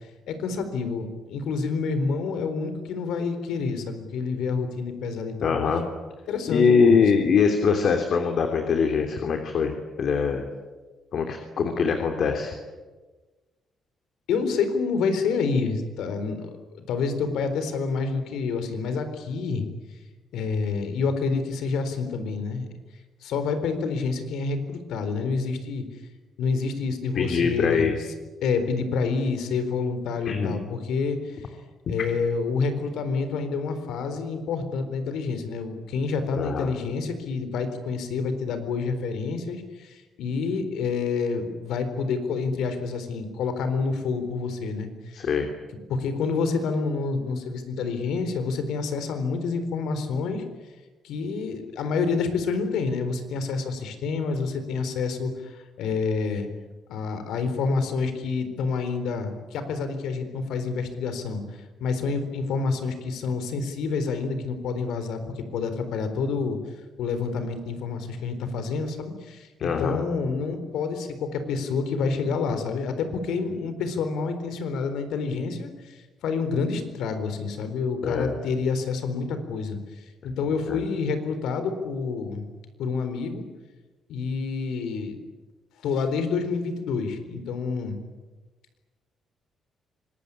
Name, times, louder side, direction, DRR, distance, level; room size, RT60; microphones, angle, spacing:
voice 1, 0.3-5.8 6.3-7.0 14.3-16.5 16.9-19.6 20.3-22.7 23.2-25.8 26.4-27.9 28.4-31.4 31.9-45.2 45.9-50.4 51.0-56.5 56.9-66.6 67.0-79.8 80.2-82.5 82.8-83.4 84.1-85.2 85.8-88.0, left 4 dB, 85° left, 9 dB, 4.0 m, -28 dB
voice 2, 5.4-5.8 6.5-9.7 10.0-10.5 11.1-12.5 27.1-27.9 30.2-30.5 36.3-36.7 45.1-45.5 69.6-70.0 78.0-78.4 80.7-80.8, left 5 dB, 60° left, 5 dB, 3.1 m, -22 dB
25.0 x 20.5 x 10.0 m, 1.3 s
cardioid pair, 90°, 0 cm